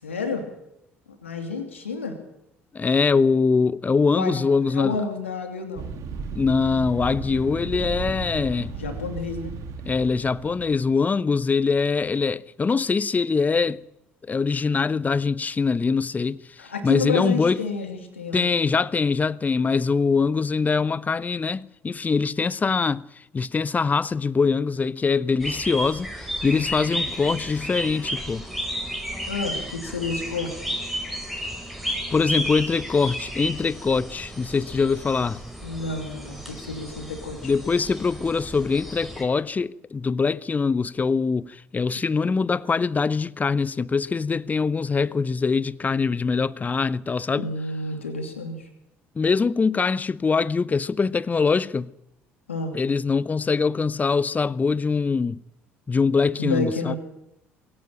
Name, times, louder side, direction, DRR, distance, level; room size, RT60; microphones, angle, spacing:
voice 1, 0.0-0.4 1.2-2.2 4.1-4.4 4.7-5.9 8.7-9.5 16.6-18.8 26.5-26.8 29.3-30.7 35.6-37.5 47.4-48.7 52.5-52.8 56.4-57.0, left 4 dB, 85° left, 2.8 m, -30 dB
voice 2, 2.7-5.0 6.3-8.7 9.9-13.8 14.3-16.4 16.8-17.6 18.3-23.0 23.3-26.1 26.4-28.4 32.1-35.4 37.4-47.5 49.2-51.9 52.7-55.4 55.9-57.0, left 4 dB, 25° left, 0.8 m, -23 dB
sound 1, 5.8-11.0, right 4 dB, 55° right, 2.8 m, -35 dB
sound 2, 25.4-39.2, equal, ahead, 5.6 m, -33 dB
21.5 x 17.0 x 9.0 m
figure-of-eight pair, 55°, 7 cm